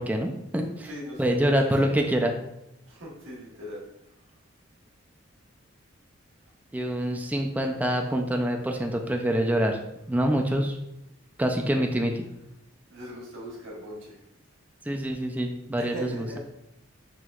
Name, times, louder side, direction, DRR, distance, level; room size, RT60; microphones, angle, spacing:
voice 1, 0.0-0.9 1.2-2.3 6.7-9.8 10.1-10.7 11.4-12.1 14.9-16.4, right 1 dB, 10° right, 2 dB, 0.4 m, -26 dB
voice 2, 0.8-2.2 2.9-3.8 12.9-14.2 15.8-16.4, equal, 70° right, -4 dB, 1.3 m, -39 dB
5.9 x 3.0 x 2.4 m, 0.84 s
head